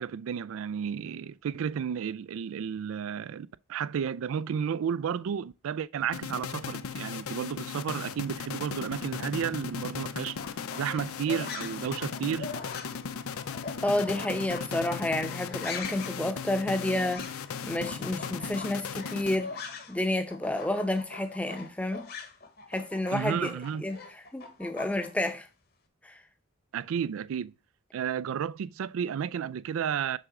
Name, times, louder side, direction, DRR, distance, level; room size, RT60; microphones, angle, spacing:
voice 1, 0.0-10.4 10.7-12.5 23.1-23.8 26.7-27.5 27.9-30.2, right 8 dB, 75° right, 0.3 m, -32 dB
sound 1, 6.1-19.8, left 6 dB, 90° left, 0.5 m, -37 dB
sound 2, 10.3-20.0 20.3-25.3, left 4 dB, 45° left, 1.1 m, -42 dB
voice 2, 13.8-22.1 22.7-23.5 23.8-24.0 24.3-25.5 26.0-26.2, left 1 dB, 5° left, 0.7 m, -30 dB
6.7 x 3.6 x 5.9 m
head